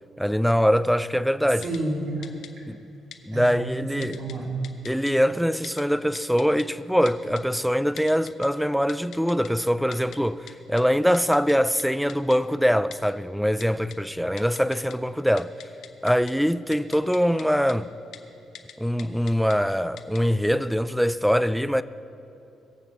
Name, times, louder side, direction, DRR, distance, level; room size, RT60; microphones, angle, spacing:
voice 1, 0.2-1.7 2.7-2.8 3.3-4.2 4.9-15.5 16.0-17.9 18.8-21.8, equal, ahead, 0.3 m, -23 dB
Typing, 1.6-1.8 2.2-2.5 3.1-3.2 4.0-4.3 4.6-5.1 5.6-5.8 6.2-6.6 7.1-7.4 8.0-8.5 8.9-9.5 9.9-10.2 10.5-10.6 10.8-10.9 11.1-11.5 11.8-11.9 12.1-12.4 12.9-13.0 13.6-14.0 14.4-15.0 15.3-16.3 16.7-17.4 17.7-17.8 18.1-18.2 18.6-18.7 19.0-19.6 20.0-20.2, left 9 dB, 75° left, 0.9 m, -42 dB
voice 2, 1.6-2.3 2.5-2.6 3.3-5.2, right 2 dB, 70° right, 2.9 m, -31 dB
21.5 x 7.5 x 5.9 m
cardioid pair, 125°, 0 cm